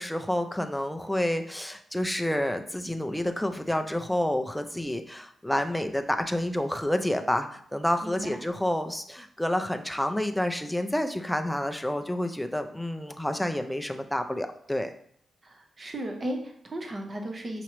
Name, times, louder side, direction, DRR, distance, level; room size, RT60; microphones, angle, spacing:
voice 1, 0.0-14.9, left 1 dB, 5° left, 6 dB, 0.3 m, -29 dB
voice 2, 8.0-8.4 15.4-17.6, right 1 dB, 30° right, 3 dB, 0.7 m, -35 dB
5.8 x 3.0 x 3.0 m, 0.66 s
wide cardioid pair, 170°, 0 cm